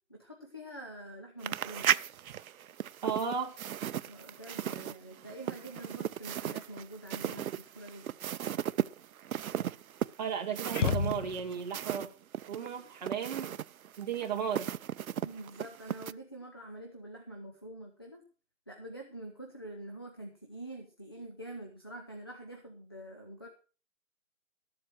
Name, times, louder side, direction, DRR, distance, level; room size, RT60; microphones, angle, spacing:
voice 1, 0.1-1.9 4.0-8.2 15.2-18.2 18.7-23.5, right 1 dB, 20° left, 0.6 m, -46 dB
sound 1, 1.4-12.1 12.3-16.1, right 10 dB, 85° right, 0.6 m, -36 dB
voice 2, 3.0-3.5 10.2-12.1 12.5-13.6 14.0-14.7, right 7 dB, 30° right, 1.8 m, -34 dB
sound 2, 10.7-11.8, left 6 dB, 60° left, 0.9 m, -31 dB
13.5 x 7.7 x 6.3 m
hypercardioid pair, 175°, 41 cm